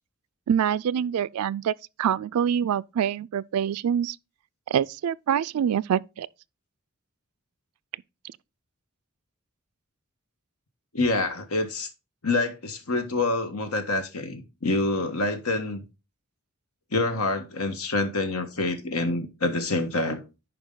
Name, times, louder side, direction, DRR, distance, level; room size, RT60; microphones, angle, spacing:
voice 1, 0.5-4.2 4.7-6.3, right 8 dB, 90° right, 0.3 m, -25 dB
voice 2, 10.9-11.9 12.2-15.8 16.9-20.2, left 2 dB, 80° left, 1.4 m, -26 dB
10.5 x 4.7 x 3.8 m
head